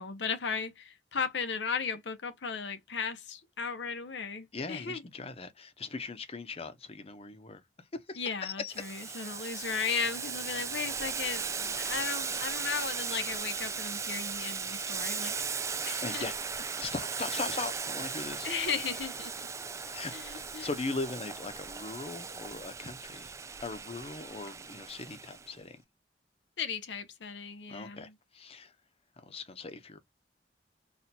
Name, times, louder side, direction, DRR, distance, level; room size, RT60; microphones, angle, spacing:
voice 1, 0.0-5.0 8.2-16.3 18.4-19.3 20.1-20.7 26.6-28.1, left 5 dB, 80° left, 0.8 m, -36 dB
voice 2, 4.5-8.7 11.6-11.7 16.0-16.3 16.8-18.5 19.9-23.3 23.6-25.8 27.7-28.7 29.2-30.0, left 3 dB, 35° left, 0.7 m, -39 dB
Boiling, 8.7-25.5, right 5 dB, 15° right, 0.3 m, -37 dB
4.2 x 2.4 x 2.7 m
head